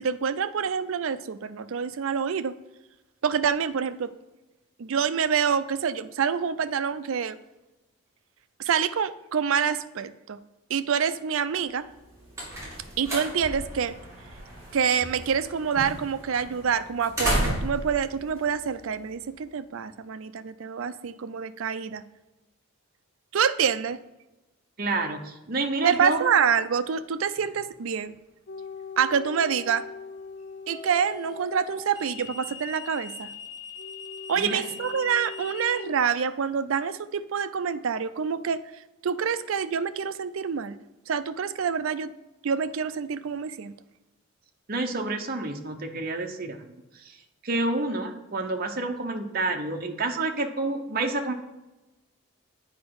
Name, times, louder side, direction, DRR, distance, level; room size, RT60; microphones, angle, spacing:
voice 1, 0.0-2.5 3.2-4.1 4.8-7.4 8.6-10.4 10.7-11.9 13.0-14.0 14.7-22.0 23.3-24.0 25.8-28.1 29.0-29.9 30.7-33.3 34.3-40.8 41.1-42.1 42.4-43.7, right 7 dB, 70° right, 13 dB, 0.4 m, -27 dB
sound 1, 11.9-19.3, right 1 dB, 15° right, 2.6 m, -34 dB
voice 2, 24.8-26.3 34.4-34.6 44.7-46.7 47.0-47.2 47.4-51.3, right 2 dB, 45° right, 3 dB, 0.8 m, -29 dB
sound 2, 27.4-27.7 30.7-35.8, left 5 dB, 20° left, 1.8 m, -42 dB
sound 3, 28.5-32.5 33.8-36.0, left 5 dB, 50° left, 0.3 m, -42 dB
8.2 x 5.1 x 4.7 m, 1.0 s
head